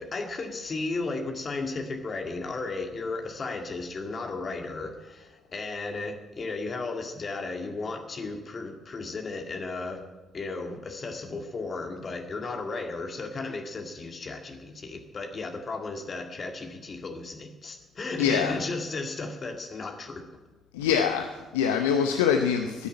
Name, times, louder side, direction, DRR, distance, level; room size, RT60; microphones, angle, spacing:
voice 1, 0.0-10.1 10.3-20.3, left 3 dB, 45° left, 3 dB, 2.1 m, -34 dB
voice 2, 18.2-18.6 20.7-22.9, left 7 dB, 80° left, 6 dB, 0.7 m, -24 dB
12.5 x 10.5 x 8.7 m, 1.2 s
hypercardioid pair, 45°, 0 cm